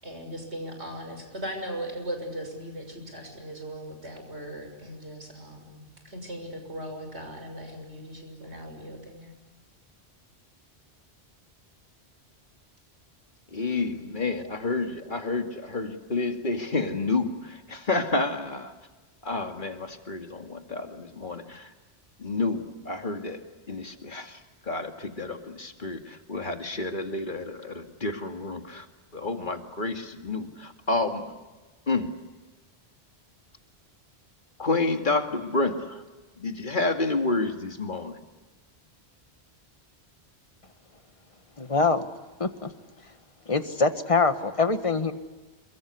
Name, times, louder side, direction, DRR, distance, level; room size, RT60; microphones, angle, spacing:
voice 1, 0.0-9.3, equal, 80° right, 5 dB, 6.7 m, -38 dB
voice 2, 13.5-18.7 19.2-21.7 22.2-24.4 24.7-28.9 29.1-31.3 31.9-32.1 34.6-36.0 36.4-38.2, left 3 dB, 45° left, 5 dB, 2.5 m, -29 dB
voice 3, 41.6-42.1 42.4-42.7 43.5-45.1, left 4 dB, 30° left, 9 dB, 1.5 m, -24 dB
28.0 x 23.0 x 8.4 m, 1.2 s
omnidirectional pair, 1.1 m